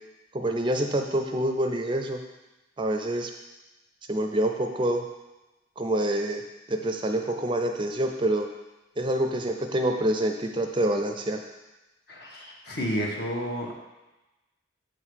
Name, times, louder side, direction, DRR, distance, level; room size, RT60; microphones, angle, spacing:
voice 1, 0.3-2.2 2.8-3.3 4.1-5.0 5.8-6.4 6.7-8.5 9.0-11.4, right 1 dB, 25° right, 4 dB, 0.4 m, -26 dB
voice 2, 12.1-13.7, equal, 55° left, -1 dB, 1.3 m, -31 dB
7.9 x 3.8 x 6.3 m, 1.1 s
head